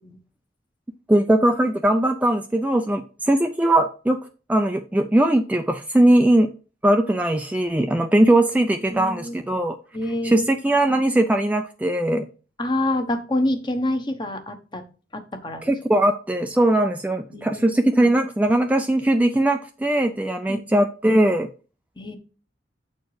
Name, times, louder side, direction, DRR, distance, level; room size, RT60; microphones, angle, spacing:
voice 1, 1.1-6.5 6.8-9.8 10.2-12.3 15.6-21.5, right 1 dB, 10° right, 6 dB, 0.4 m, -20 dB
voice 2, 8.9-9.3 9.9-10.5 12.6-14.8 15.1-15.7 17.3-17.7 20.5-20.6 22.0-22.2, left 1 dB, 25° left, 7 dB, 1.0 m, -27 dB
8.0 x 4.4 x 4.8 m, 0.35 s
head